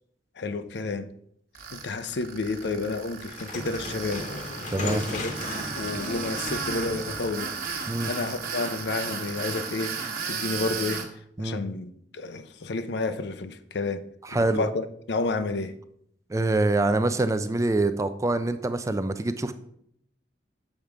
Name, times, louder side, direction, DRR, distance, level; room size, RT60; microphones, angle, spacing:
voice 1, 0.4-1.1 1.7-4.3 4.8-5.3 5.7-7.5 8.0-11.1 11.4-14.0 14.3-15.8, left 3 dB, 65° left, 0.6 m, -30 dB
Tools, 1.5-11.1, right 5 dB, 55° right, 1.2 m, -34 dB
sound 1, 3.2-8.3, left 2 dB, 45° left, 1.0 m, -37 dB
voice 2, 4.7-5.0 7.9-8.1 11.4-11.6 14.3-14.6 16.3-19.5, right 2 dB, 15° right, 0.4 m, -25 dB
7.3 x 4.6 x 5.0 m
head